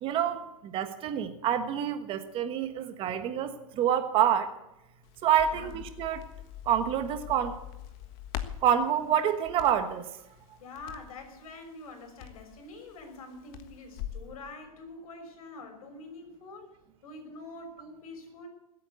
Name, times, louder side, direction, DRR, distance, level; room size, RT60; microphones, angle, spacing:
voice 1, 0.0-4.5 5.2-6.2 6.6-7.5 8.6-10.0, right 9 dB, 30° right, 8 dB, 1.4 m, -27 dB
Crackle, 5.0-14.3, left 11 dB, 45° left, 1.5 m, -44 dB
voice 2, 10.6-16.8 17.0-18.5, left 2 dB, 70° left, 5 dB, 5.9 m, -45 dB
20.0 x 8.6 x 8.2 m, 0.89 s
hypercardioid pair, 145°, 19 cm